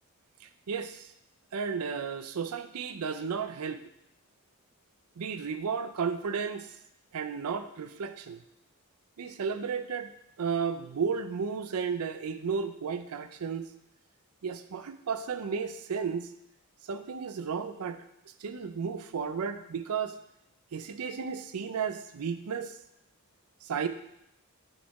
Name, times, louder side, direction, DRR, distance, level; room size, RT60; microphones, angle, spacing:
voice 1, 0.4-1.1 1.5-3.8 5.2-6.7 7.1-8.4 9.2-10.1 10.4-13.7 14.4-16.3 16.9-18.0 18.4-20.2 20.7-22.7 23.6-23.9, right 6 dB, 85° right, 10 dB, 0.5 m, -33 dB
8.7 x 4.3 x 4.7 m, 0.80 s
head